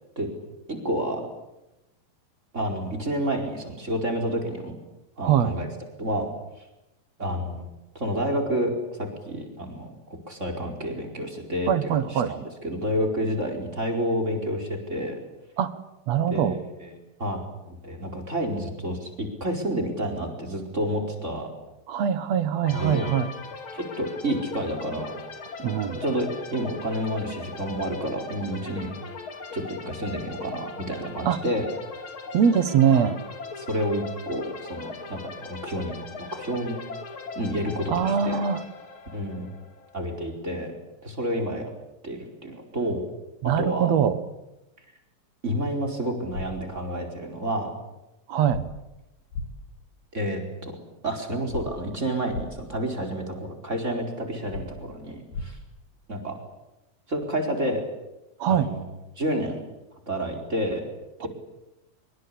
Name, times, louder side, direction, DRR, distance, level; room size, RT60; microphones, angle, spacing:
voice 1, 0.7-1.2 2.5-4.7 5.2-5.7 6.0-6.3 7.2-7.7 7.9-8.7 9.0-9.9 10.3-15.2 16.3-21.5 22.7-23.1 23.7-25.1 26.0-28.9 29.5-31.6 32.9-33.1 33.6-35.9 36.3-36.7 37.3-38.4 39.1-39.5 39.9-40.7 41.0-41.7 42.0-43.0 43.6-44.0 45.4-47.7 50.1-50.7 51.0-55.6 56.1-56.4 57.1-57.8 58.5-58.8 59.2-59.6 60.1-60.9 61.2-61.3, equal, 20° right, 2 dB, 4.7 m, -29 dB
voice 2, 5.2-5.5 11.7-12.3 15.6-15.8 16.1-16.6 21.9-23.3 25.6-26.0 31.2-31.4 32.3-33.2 37.9-38.6 43.4-44.1 48.3-48.6 58.4-58.7 61.2-61.3, right 8 dB, 60° right, 12 dB, 2.2 m, -22 dB
sound 1, 22.6-40.2, left 4 dB, 40° left, 3.0 m, -39 dB
sound 2, 46.3-46.5 48.5-48.6 49.3-49.5 51.5-51.6 52.3-52.5 54.5-54.6 55.3-55.5, left 3 dB, 85° left, 4.7 m, -32 dB
25.0 x 24.0 x 8.6 m, 0.96 s
omnidirectional pair, 4.0 m